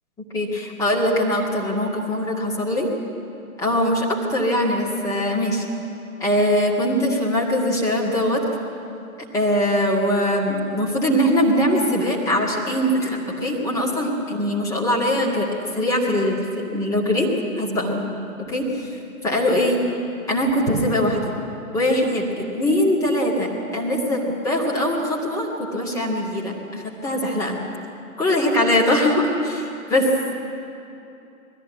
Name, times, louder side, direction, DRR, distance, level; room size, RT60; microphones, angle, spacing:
voice 1, 0.3-2.9 3.6-5.7 6.2-8.4 9.3-15.5 15.7-17.3 17.6-18.0 18.5-18.9 19.2-19.8 20.3-21.3 21.7-27.6 28.2-30.3, left 1 dB, 5° left, -2 dB, 2.2 m, -22 dB
21.0 x 14.5 x 9.5 m, 2.7 s
figure-of-eight pair, 135°, 44 cm